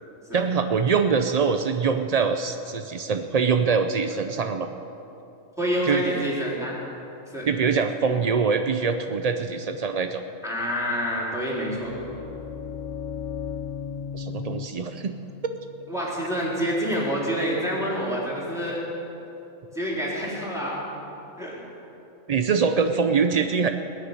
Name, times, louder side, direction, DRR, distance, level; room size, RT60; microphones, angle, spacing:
voice 1, 0.3-4.7 5.9-6.0 7.5-10.2 14.1-15.1 22.3-23.7, right 5 dB, 70° right, 7 dB, 0.3 m, -23 dB
voice 2, 5.6-6.7 7.3-7.5 10.4-11.9 15.9-18.8 19.7-20.8 21.4-21.6, equal, ahead, -6 dB, 3.7 m, -27 dB
sound 1, 11.7-17.4, left 6 dB, 50° left, 0.5 m, -37 dB
20.0 x 6.7 x 9.5 m, 3.0 s
omnidirectional pair, 1.4 m